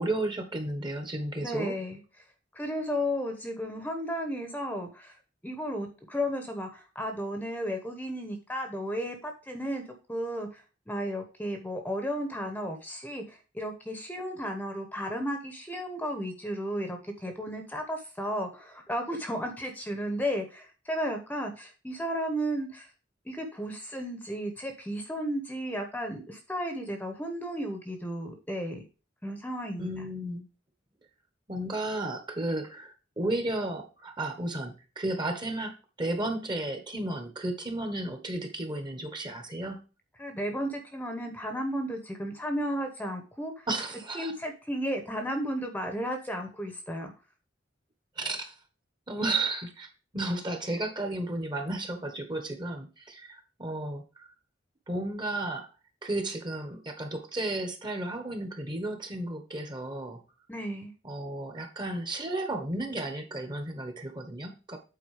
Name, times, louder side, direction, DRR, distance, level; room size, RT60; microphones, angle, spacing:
voice 1, 0.0-1.8 29.8-30.4 31.5-39.8 43.7-44.3 48.2-48.5 49.1-54.3 54.9-55.7 56.0-60.2 61.0-64.8, right 2 dB, 25° right, 6 dB, 1.3 m, -33 dB
voice 2, 1.4-2.0 2.5-5.1 5.4-9.8 10.1-10.6 10.9-22.9 23.3-28.8 29.2-29.9 40.2-43.7 44.1-47.1 60.5-60.9, equal, 10° left, 5 dB, 1.0 m, -34 dB
8.4 x 4.3 x 4.9 m, 0.34 s
head